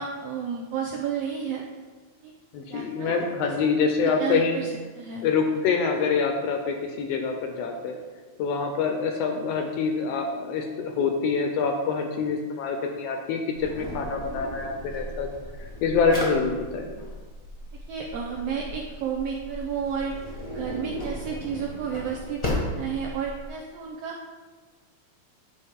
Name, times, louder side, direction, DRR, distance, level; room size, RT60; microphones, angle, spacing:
voice 1, 0.0-1.6 2.2-2.3 2.7-3.1 3.4-3.5 3.8-5.3 17.9-20.1 20.5-24.2, right 7 dB, 75° right, -1 dB, 1.5 m, -32 dB
voice 2, 2.5-4.6 5.2-7.9 8.4-15.3 15.6-16.9, left 5 dB, 80° left, 4 dB, 1.5 m, -26 dB
Drawer open or close, 13.6-23.5, left 1 dB, 35° left, 0.6 m, -35 dB
9.8 x 4.7 x 3.6 m, 1.4 s
omnidirectional pair, 3.4 m